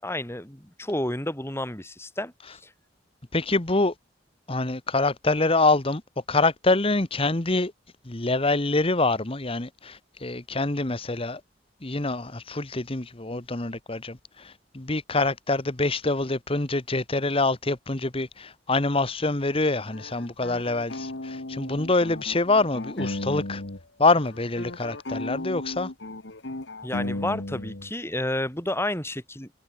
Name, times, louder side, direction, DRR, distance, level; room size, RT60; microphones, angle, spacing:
voice 1, 0.0-2.7 26.8-29.5, left 1 dB, 15° left, 6.5 m, -31 dB
voice 2, 3.3-3.9 4.5-6.0 6.3-7.7 8.0-11.4 11.8-23.6 24.0-25.9, left 2 dB, 30° left, 1.4 m, -25 dB
sound 1, 19.9-23.8 24.1-27.9, left 2 dB, 75° left, 1.8 m, -35 dB
head